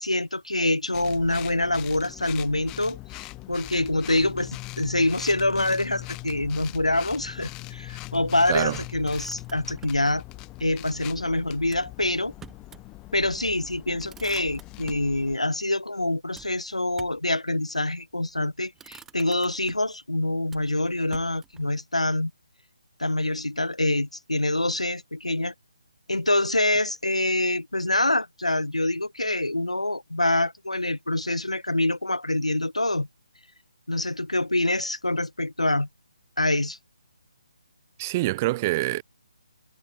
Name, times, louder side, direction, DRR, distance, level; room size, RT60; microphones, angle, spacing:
voice 1, 0.0-3.0 3.5-10.2 10.6-12.3 13.1-22.3 23.0-25.5 26.1-33.1 33.9-35.9 36.4-36.8, left 2 dB, 85° left, 1.4 m, -25 dB
sound 1, 0.9-15.4, left 21 dB, 15° left, 2.9 m, -41 dB
Motor vehicle (road), 9.0-10.1 11.6-12.9 13.3-13.4 13.7-15.1 16.3-17.3 18.2-18.4 18.7-20.0 20.5-21.7, right 8 dB, 10° right, 2.0 m, -49 dB
voice 2, 38.0-39.0, right 19 dB, 25° right, 0.7 m, -25 dB
figure-of-eight pair, 145°, 3 cm